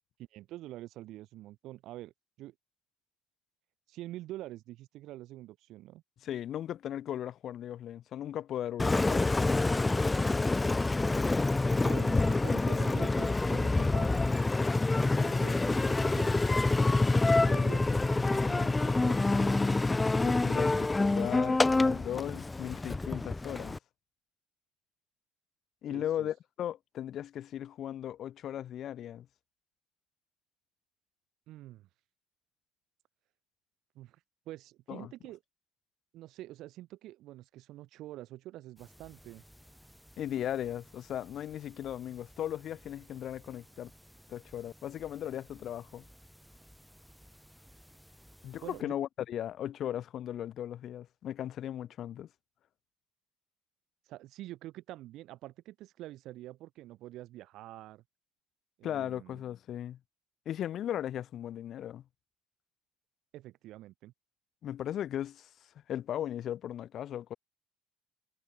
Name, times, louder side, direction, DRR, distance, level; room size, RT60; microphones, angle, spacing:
voice 1, 0.3-2.1 2.4-2.5 3.9-6.0 11.8-14.2 15.2-16.5 17.5-19.7 25.9-26.3 31.5-31.9 33.9-34.2 34.5-35.4 36.1-39.4 48.6-48.9 54.1-58.0 58.8-59.4 63.3-64.1, right 15 dB, 70° right, 4.8 m, -46 dB
voice 2, 6.2-9.3 20.2-23.8 25.8-29.3 34.9-35.1 40.2-43.9 44.3-46.0 48.4-52.3 58.8-60.0 60.4-62.0 64.6-65.5 65.9-67.3, left 11 dB, 55° left, 1.2 m, -37 dB
Engine, 8.8-23.8, left 3 dB, 15° left, 0.3 m, -27 dB
sound 1, 38.8-48.8, equal, ahead, 6.2 m, -58 dB
supercardioid pair, 85°, 0 cm